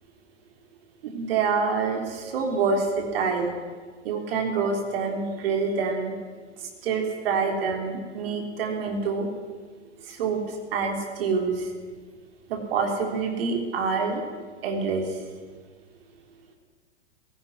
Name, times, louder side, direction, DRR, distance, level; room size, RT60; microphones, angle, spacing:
voice 1, 1.0-3.5 4.0-6.2 6.6-9.3 10.1-11.7 12.5-14.2 14.6-15.2, right 5 dB, 55° right, 3 dB, 3.5 m, -26 dB
19.0 x 17.0 x 9.9 m, 1.5 s
figure-of-eight pair, 105°, 36 cm